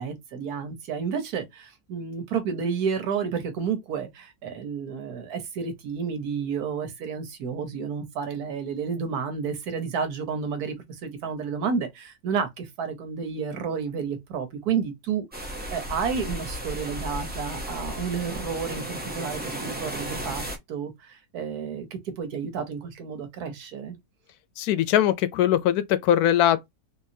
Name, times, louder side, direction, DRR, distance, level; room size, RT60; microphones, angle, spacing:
voice 1, 0.0-10.8 11.0-24.0, right 6 dB, 80° right, 1.4 m, -31 dB
sound 1, 15.3-20.6, equal, 15° right, 0.4 m, -34 dB
voice 2, 24.6-26.7, left 11 dB, 80° left, 1.1 m, -21 dB
3.7 x 2.9 x 2.7 m
omnidirectional pair, 1.6 m